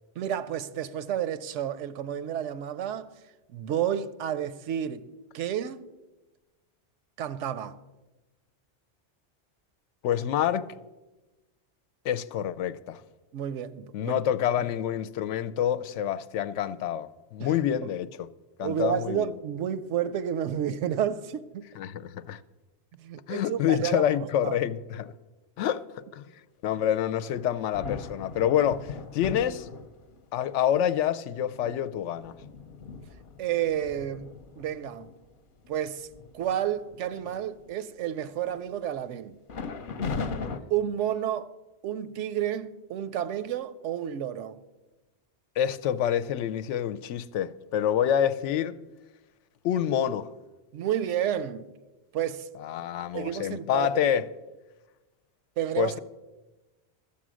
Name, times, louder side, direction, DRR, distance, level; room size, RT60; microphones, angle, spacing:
voice 1, 0.2-3.1 3.5-5.9 7.2-7.8 13.3-14.2 14.6-14.7 17.4-17.5 18.6-21.6 23.0-24.6 33.4-35.1 35.7-36.1 36.3-39.4 40.7-41.6 41.8-44.6 50.7-51.7 52.1-52.5 53.1-54.2 55.6-56.0, right 10 dB, 85° right, 0.9 m, -31 dB
voice 2, 10.0-10.7 12.0-13.0 13.9-18.3 18.6-19.3 21.8-22.4 23.3-25.1 25.6-26.3 26.6-29.7 30.3-32.3 45.6-48.7 49.6-50.3 52.6-54.2 55.8-56.0, left 10 dB, 85° left, 0.9 m, -27 dB
sound 1, 27.3-30.2 30.9-31.0 31.5-35.1 35.6-35.8 36.1-36.5 36.9-37.7 39.5-40.6, left 5 dB, 50° left, 0.8 m, -38 dB
13.0 x 7.3 x 6.2 m
omnidirectional pair, 1.2 m